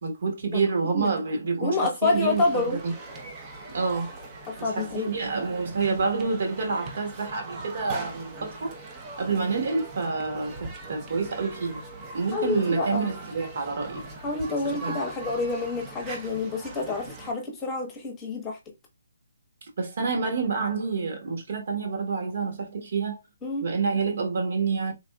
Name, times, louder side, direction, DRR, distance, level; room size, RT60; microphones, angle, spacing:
voice 1, 0.0-2.4 2.8-2.9 3.7-4.1 4.6-8.7 9.2-11.8 12.1-14.0 14.6-15.0 19.8-23.2 23.6-24.9, right 4 dB, 60° right, 1.3 m, -28 dB
voice 2, 0.5-1.1 1.6-2.8 4.5-5.1 12.3-13.1 14.2-18.6 23.4-23.7, left 3 dB, 20° left, 1.0 m, -28 dB
sound 1, 2.0-17.3, right 2 dB, 25° right, 0.7 m, -41 dB
3.5 x 2.3 x 2.3 m
figure-of-eight pair, 145°, 0 cm